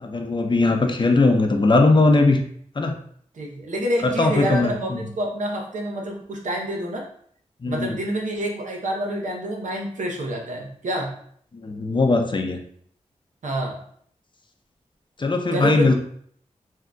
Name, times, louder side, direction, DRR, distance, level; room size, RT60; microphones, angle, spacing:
voice 1, 0.0-2.4 2.8-3.0 4.0-5.0 7.6-7.9 11.6-12.6 15.2-15.9, left 3 dB, 40° left, 4 dB, 0.5 m, -19 dB
voice 2, 3.3-7.0 7.6-11.1 13.4-13.8 15.5-15.9, right 1 dB, 85° right, 0 dB, 0.7 m, -27 dB
3.7 x 2.6 x 2.3 m, 0.62 s
cardioid pair, 50°, 13 cm